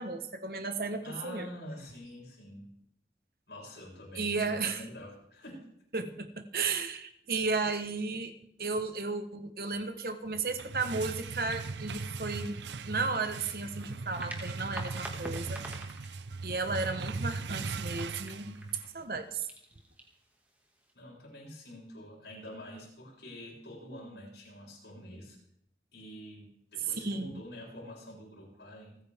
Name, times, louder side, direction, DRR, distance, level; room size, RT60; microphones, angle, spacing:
voice 1, 0.0-1.5 4.1-4.8 5.9-6.3 6.5-8.3 8.6-12.6 12.8-15.7 16.4-18.6 18.9-19.5 27.0-27.3, right 4 dB, 55° right, 8 dB, 1.2 m, -34 dB
voice 2, 1.0-2.7 3.5-5.7 20.9-25.4 25.9-29.0, left 1 dB, 80° left, -4 dB, 7.2 m, -46 dB
sound 1, 10.3-19.0, right 4 dB, 85° right, 0.6 m, -39 dB
sound 2, 14.0-20.9, right 1 dB, 10° right, 2.1 m, -48 dB
28.5 x 9.7 x 3.6 m, 0.73 s
head